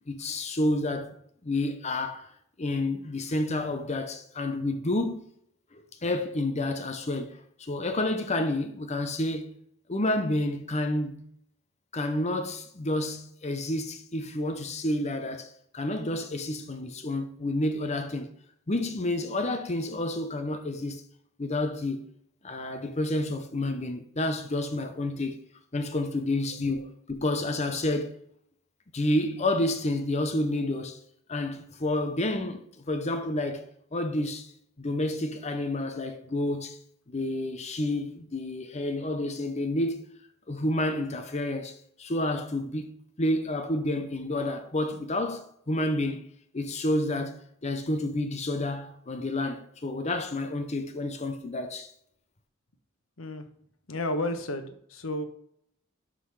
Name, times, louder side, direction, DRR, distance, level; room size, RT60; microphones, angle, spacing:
voice 1, 0.1-1.1 1.4-2.3 2.6-5.2 5.7-9.5 9.9-11.3 11.9-18.3 18.7-21.0 21.4-22.0 22.4-25.4 25.7-28.2 28.9-31.0 31.3-33.6 33.9-34.5 34.8-36.8 37.1-40.0 40.5-46.3 46.5-51.9, left 1 dB, 35° left, 0.8 m, -29 dB
voice 2, 53.9-55.2, left 1 dB, 85° left, 1.2 m, -32 dB
12.0 x 4.0 x 4.8 m
head